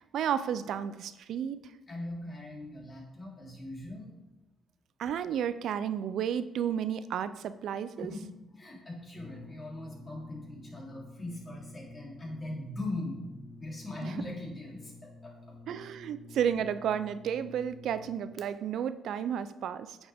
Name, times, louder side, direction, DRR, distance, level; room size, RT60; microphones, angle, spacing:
voice 1, 0.0-1.6 5.0-8.1 14.0-14.2 15.7-20.0, right 8 dB, 75° right, 13 dB, 0.4 m, -32 dB
voice 2, 1.9-4.1 8.0-8.2 8.5-13.2 13.6-15.6, left 1 dB, 30° left, -3 dB, 3.1 m, -40 dB
Brass instrument, 9.1-18.5, left 2 dB, 50° left, 0.8 m, -50 dB
8.5 x 7.2 x 3.5 m, 0.98 s
cardioid pair, 90°, 0 cm